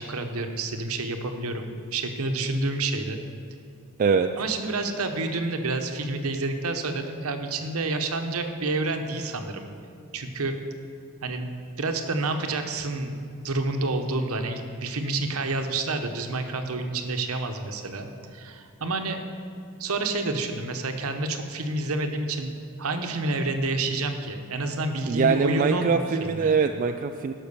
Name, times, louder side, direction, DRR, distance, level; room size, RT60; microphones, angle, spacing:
voice 1, 0.0-3.2 4.4-9.7 10.1-10.6 11.2-11.5 11.8-19.2 19.8-26.6, right 2 dB, 70° right, 6 dB, 0.9 m, -29 dB
voice 2, 4.0-4.3 25.1-27.3, right 5 dB, 35° right, 6 dB, 0.3 m, -23 dB
12.0 x 5.8 x 6.7 m, 2.5 s
head